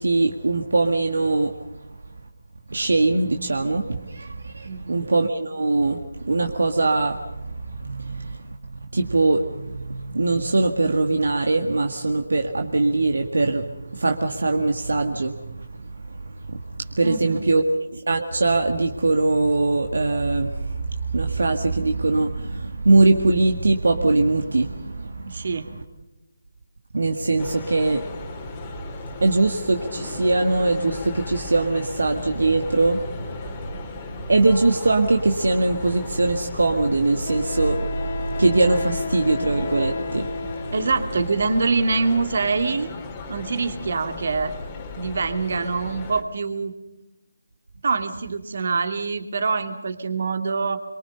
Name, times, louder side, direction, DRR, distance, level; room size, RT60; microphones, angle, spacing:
voice 1, 0.0-1.6 2.7-6.0 6.3-8.6 8.9-25.6 26.9-28.1 29.2-33.0 34.3-40.7, right 2 dB, 65° right, 4 dB, 1.9 m, -22 dB
voice 2, 4.6-5.0 17.0-17.4 25.3-25.6 40.7-42.9 43.3-44.5 44.9-46.7 47.8-50.8, right 4 dB, 45° right, 7 dB, 2.5 m, -24 dB
sound 1, 27.4-46.2, left 3 dB, 20° left, 2.9 m, -36 dB
Wind instrument woodwind instrument, 36.0-36.1 37.3-41.3, left 4 dB, 40° left, 1.1 m, -32 dB
26.5 x 24.0 x 5.5 m, 0.99 s
figure-of-eight pair, 155°, 0 cm